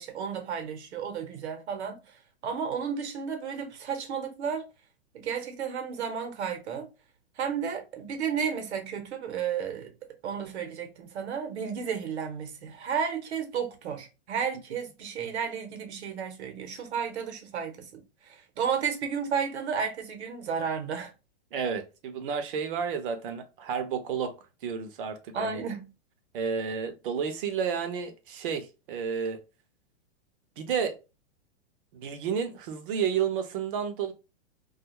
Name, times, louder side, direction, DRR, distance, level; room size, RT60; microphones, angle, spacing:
voice 1, 0.0-2.0 2.4-4.7 5.1-6.9 7.4-9.9 10.2-21.1 25.3-25.9, right 7 dB, 80° right, 1.0 m, -32 dB
voice 2, 21.5-24.3 24.6-25.6 26.3-29.4 30.6-31.0 31.9-34.1, right 7 dB, 55° right, 0.7 m, -31 dB
2.4 x 2.3 x 2.9 m
hypercardioid pair, 155°, 33 cm